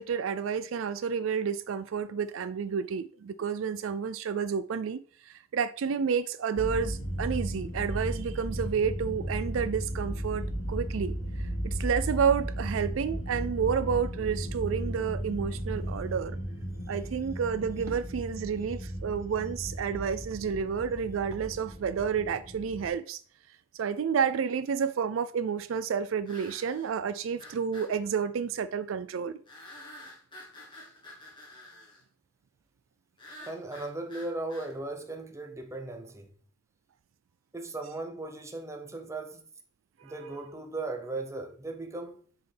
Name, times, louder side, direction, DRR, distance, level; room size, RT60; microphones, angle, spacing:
voice 1, 0.0-16.4 16.9-23.2 23.7-29.4 40.0-40.1, right 6 dB, 75° right, 0.4 m, -30 dB
sound 1, 6.6-22.9, equal, 70° left, 1.6 m, -35 dB
sound 2, 26.3-26.9 27.4-27.9 29.5-32.0 33.2-34.7, left 1 dB, 25° left, 1.7 m, -48 dB
voice 2, 33.4-36.3 37.5-39.5 40.0-42.2, right 2 dB, 15° right, 0.7 m, -37 dB
6.7 x 4.6 x 3.4 m
head